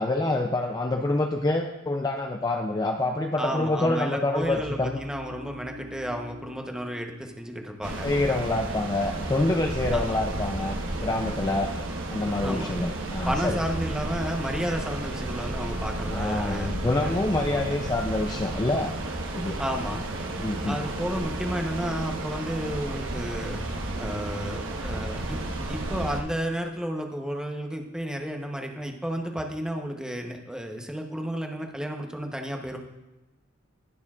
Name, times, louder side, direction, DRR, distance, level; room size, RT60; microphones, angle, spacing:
voice 1, 0.0-5.0 8.0-11.7 12.1-13.6 16.1-18.9 19.3-19.6 20.4-20.8, left 2 dB, 20° left, 3 dB, 0.4 m, -26 dB
voice 2, 3.4-8.1 9.9-10.1 12.4-12.7 13.2-16.7 17.0-17.8 19.6-20.0 20.6-23.6 24.0-25.4 25.7-32.8, equal, 5° right, 2 dB, 0.9 m, -32 dB
sound 1, 4.4-7.8 8.1-8.4, left 1 dB, 60° right, 1.9 m, -46 dB
sound 2, 7.8-26.2, right 2 dB, 75° right, 1.1 m, -32 dB
20.0 x 6.8 x 2.4 m, 1.0 s
head